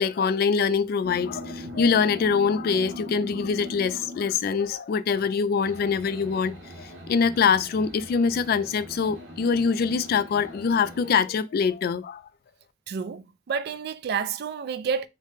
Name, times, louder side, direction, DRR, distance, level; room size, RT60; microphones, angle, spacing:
voice 1, 0.0-12.2, left 5 dB, 55° left, 0.3 m, -24 dB
sound 1, 1.0-4.6 5.6-11.1, equal, 85° right, 1.3 m, -41 dB
voice 2, 12.9-15.1, right 6 dB, 60° right, 0.3 m, -29 dB
3.5 x 2.1 x 3.8 m
head